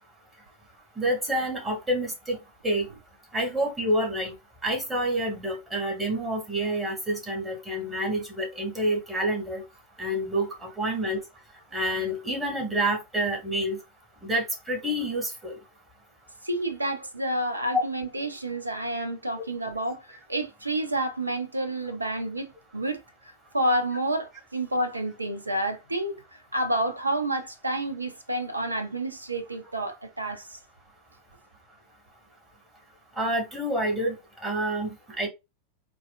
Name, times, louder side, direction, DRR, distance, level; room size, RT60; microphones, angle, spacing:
voice 1, 1.0-2.4 2.6-2.9 3.3-4.3 4.6-9.6 10.0-11.2 11.7-13.8 14.2-15.5 17.7-17.8 33.2-34.2 34.4-35.3, right 1 dB, 10° right, 1.5 m, -28 dB
voice 2, 16.4-23.0 23.5-30.6, right 1 dB, 80° right, 0.6 m, -29 dB
4.1 x 2.3 x 2.4 m
figure-of-eight pair, 90°, 0 cm